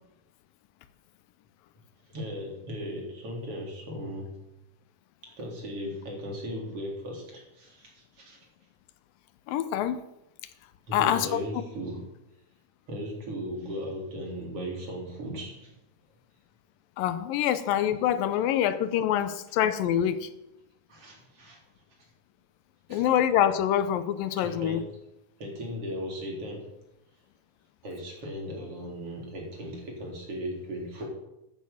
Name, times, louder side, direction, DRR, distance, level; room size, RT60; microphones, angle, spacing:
voice 1, 2.1-4.4 5.4-8.4 10.9-12.0 12.9-15.7 20.9-21.6 22.9-23.0 24.4-24.9 25.4-26.6 27.8-31.1, equal, 45° right, -1 dB, 4.1 m, -37 dB
voice 2, 9.5-10.0 10.9-11.4 17.0-20.3 22.9-24.8, left 10 dB, 85° left, 12 dB, 2.5 m, -25 dB
13.0 x 9.3 x 7.2 m, 0.89 s
omnidirectional pair, 3.9 m